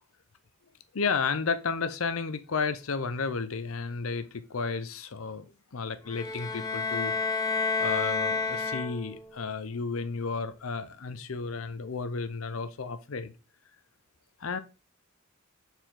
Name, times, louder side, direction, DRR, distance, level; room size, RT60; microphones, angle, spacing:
voice 1, 0.9-7.1 7.8-13.3 14.4-14.6, left 5 dB, 75° left, 0.7 m, -32 dB
sound 1, 6.1-9.3, left 4 dB, 20° left, 0.7 m, -30 dB
6.9 x 4.5 x 3.8 m
head